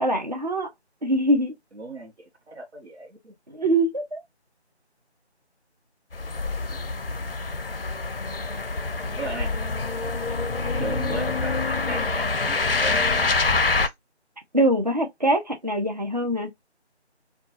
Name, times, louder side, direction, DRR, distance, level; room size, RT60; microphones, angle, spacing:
voice 1, 0.0-0.7 1.0-1.5 3.5-4.2 14.5-16.5, right 1 dB, 40° right, 0.6 m, -23 dB
voice 2, 1.7-2.1 2.5-3.3 6.7-6.8 9.1-9.5 10.6-13.0, right 2 dB, 70° right, 0.9 m, -36 dB
sound 1, 6.1-13.9, left 3 dB, 55° left, 0.5 m, -26 dB
2.6 x 2.3 x 2.7 m
figure-of-eight pair, 170°, 34 cm